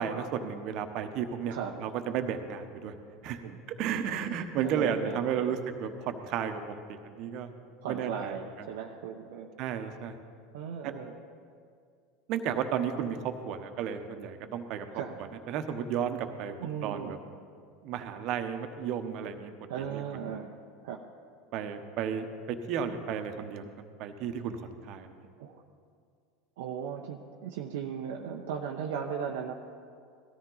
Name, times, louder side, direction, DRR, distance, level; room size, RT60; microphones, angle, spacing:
voice 1, 0.0-2.9 3.2-3.4 3.8-7.5 7.8-8.7 9.6-10.1 10.8-10.9 12.3-14.9 15.2-16.5 16.8-17.2 17.8-19.5 19.9-20.3 21.5-23.6 24.0-25.2, right 8 dB, 55° right, 7 dB, 1.1 m, -33 dB
voice 2, 4.6-5.5 7.8-9.5 10.5-11.1 14.9-15.2 16.6-17.2 18.0-18.1 19.7-20.5 20.8-21.0 25.4-25.6 26.6-29.5, right 7 dB, 70° right, 1 dB, 0.8 m, -37 dB
18.0 x 13.5 x 4.0 m, 2.2 s
hypercardioid pair, 85°, 0 cm